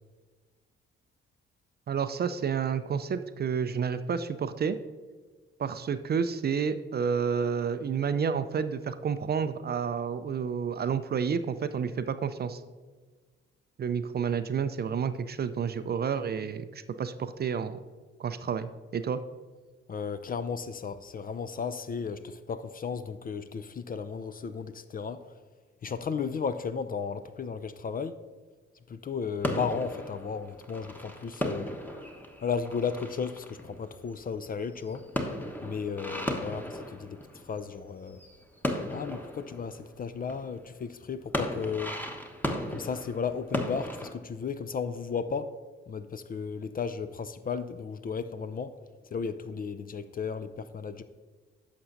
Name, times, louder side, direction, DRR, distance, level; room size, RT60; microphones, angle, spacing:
voice 1, 1.9-4.8 5.6-12.6 13.8-17.8 18.2-19.2, right 6 dB, 35° right, 0.5 m, -30 dB
voice 2, 19.9-25.2 25.8-28.2 28.9-31.7 32.4-35.0 35.6-38.2 38.9-42.0 42.7-45.5 45.9-48.8 49.1-51.0, left 6 dB, 30° left, 0.4 m, -34 dB
sound 1, 29.4-37.8 38.1-40.7 41.1-44.1, left 1 dB, 5° left, 1.1 m, -36 dB
11.0 x 6.7 x 2.6 m
hypercardioid pair, 40°, 30 cm